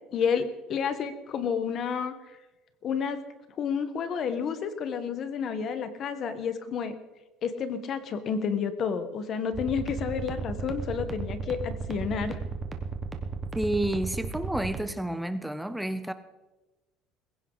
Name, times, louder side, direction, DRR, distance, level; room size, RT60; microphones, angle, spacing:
voice 1, 0.1-2.1 2.8-3.2 3.6-6.9 7.4-12.4, left 6 dB, 35° left, 1.3 m, -30 dB
sound 1, 9.5-14.8, right 5 dB, 15° right, 1.3 m, -34 dB
voice 2, 13.5-16.1, right 1 dB, ahead, 0.6 m, -30 dB
21.0 x 16.0 x 4.0 m
cardioid pair, 170°, 0 cm